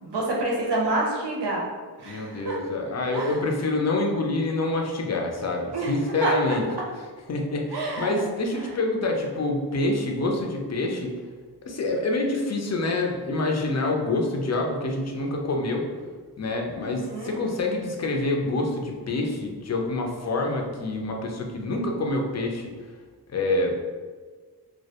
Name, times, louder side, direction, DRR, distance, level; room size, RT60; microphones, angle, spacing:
voice 1, 0.0-1.7 2.0-2.6 3.1-3.4 5.7-5.9 6.2-6.3 7.7-8.2 8.6-8.7 16.8-17.4, right 2 dB, 85° right, -3 dB, 0.6 m, -28 dB
voice 2, 2.0-6.6 7.3-11.1 11.7-15.9 16.4-22.7 23.3-23.9, left 2 dB, 45° left, 1 dB, 0.4 m, -26 dB
2.2 x 2.1 x 2.7 m, 1.5 s
wide cardioid pair, 70°, 40 cm